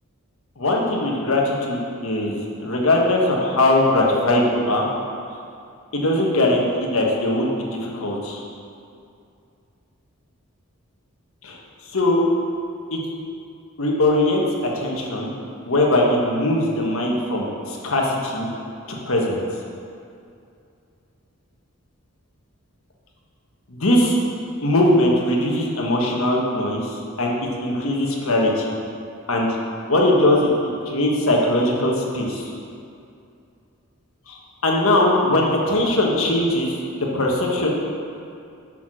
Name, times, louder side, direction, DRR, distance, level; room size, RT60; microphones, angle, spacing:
voice 1, 0.6-4.9 5.9-8.4 11.4-11.6 11.9-12.2 12.9-13.0 13.8-14.4 14.7-15.3 15.7-18.5 18.9-19.4 23.7-24.1 24.6-26.8 27.2-27.3 27.6-28.7 29.3-29.5 29.9-30.5 30.9-32.5 34.3-36.7 37.1-37.7, left 1 dB, 70° left, -1 dB, 1.4 m, -20 dB
7.0 x 5.9 x 6.2 m, 2.5 s
head